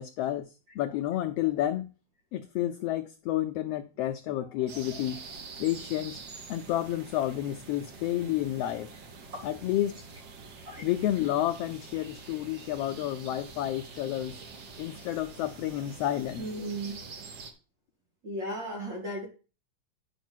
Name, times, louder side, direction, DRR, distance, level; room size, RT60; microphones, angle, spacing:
voice 1, 0.0-1.9 2.3-5.2 5.6-6.2 6.5-8.9 9.4-10.0 10.8-14.4 14.8-16.5, left 13 dB, 85° left, 7 dB, 1.4 m, -30 dB
sound 1, 4.7-17.5, right 4 dB, 55° right, 1.4 m, -46 dB
voice 2, 16.4-16.9 18.2-19.3, right 1 dB, 40° right, -2 dB, 3.8 m, -35 dB
9.8 x 5.7 x 4.4 m, 0.34 s
omnidirectional pair, 3.3 m